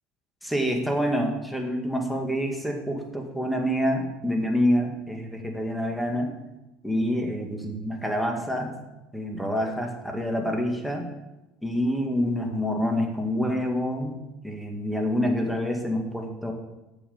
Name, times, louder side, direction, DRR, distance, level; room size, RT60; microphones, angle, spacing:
voice 1, 0.4-6.3 6.8-8.8 9.1-11.1 11.6-14.2 14.4-16.5, equal, ahead, 2 dB, 2.1 m, -27 dB
7.9 x 7.1 x 7.2 m, 1.0 s
supercardioid pair, 90°, 4 cm